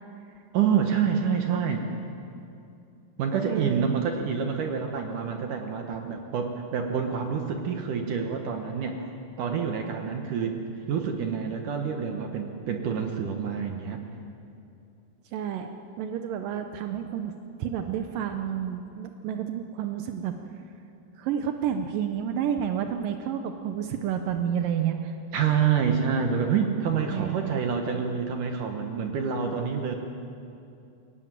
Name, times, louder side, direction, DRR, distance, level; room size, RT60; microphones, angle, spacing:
voice 1, 0.5-1.8 3.2-9.1 9.4-10.5 10.9-14.0 25.3-29.9, right 7 dB, 65° right, 4 dB, 2.1 m, -27 dB
voice 2, 3.5-3.9 15.3-20.4 21.2-25.1 27.1-27.6, right 9 dB, 85° right, 6 dB, 1.9 m, -30 dB
22.0 x 18.0 x 9.1 m, 2.6 s
omnidirectional pair, 5.2 m